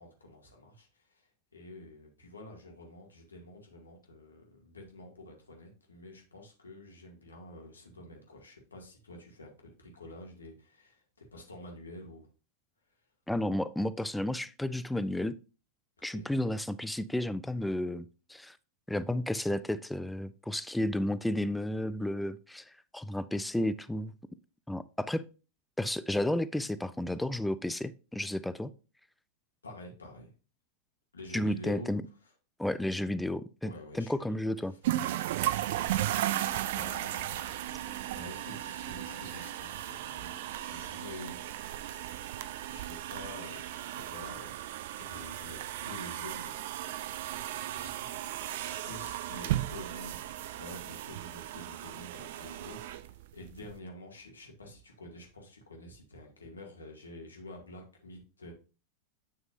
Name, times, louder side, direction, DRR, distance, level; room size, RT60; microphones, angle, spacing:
voice 1, 0.0-12.3 16.1-16.3 29.6-30.3 31.1-31.9 33.6-34.3 36.7-41.4 42.7-46.5 47.7-47.9 48.8-53.0 53.3-58.5, left 1 dB, 75° left, 2.3 m, -48 dB
voice 2, 13.3-15.4 16.0-18.6 18.9-24.1 24.7-25.2 25.8-28.7 31.3-32.1 32.6-34.7, left 1 dB, 5° left, 0.4 m, -32 dB
sound 1, 34.8-53.7, right 13 dB, 55° right, 0.6 m, -36 dB
9.0 x 6.3 x 2.6 m
figure-of-eight pair, 90°, 0 cm